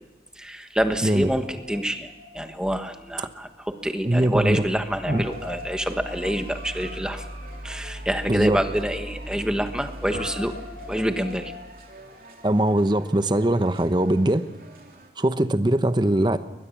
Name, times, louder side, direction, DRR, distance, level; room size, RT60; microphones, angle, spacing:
voice 1, 0.4-7.3 7.6-10.5 10.9-11.5, equal, 5° right, 7 dB, 1.3 m, -27 dB
Guitar, 1.4-3.8 4.1-4.2 5.1-12.9, left 3 dB, 80° left, 6.7 m, -43 dB
voice 2, 4.0-4.6 5.1-5.2 8.3-8.6 12.4-14.5 15.2-16.4, right 1 dB, 25° right, 11 dB, 0.9 m, -21 dB
sound 1, 5.2-15.1, right 2 dB, 55° right, 3.4 m, -48 dB
22.0 x 20.5 x 7.2 m, 1.1 s
head